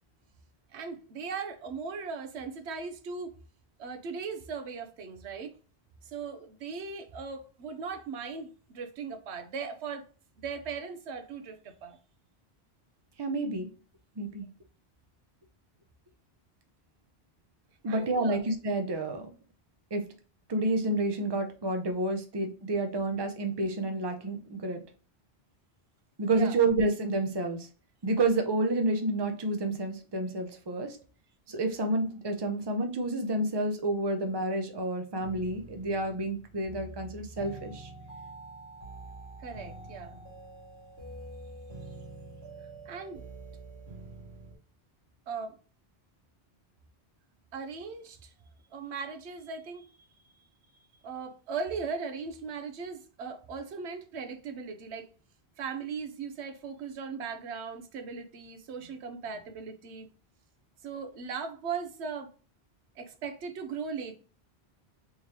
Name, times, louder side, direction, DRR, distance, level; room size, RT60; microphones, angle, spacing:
voice 1, 0.7-3.4 3.8-5.5 6.0-10.1 10.4-12.0 17.9-18.4 26.3-26.6 39.4-40.2 42.9-43.2 45.3-45.6 47.5-48.3 48.7-50.1 51.0-55.1 55.6-60.1 60.8-62.3 63.0-64.2, right 5 dB, 90° right, 0.9 m, -38 dB
voice 2, 13.2-13.7 14.2-14.5 17.8-19.3 19.9-20.0 20.5-24.8 26.2-27.7 28.0-31.0 31.5-37.9, right 2 dB, 30° right, 0.5 m, -29 dB
sound 1, 35.2-44.6, right 2 dB, 70° right, 1.6 m, -46 dB
3.7 x 3.1 x 2.8 m
omnidirectional pair, 1.1 m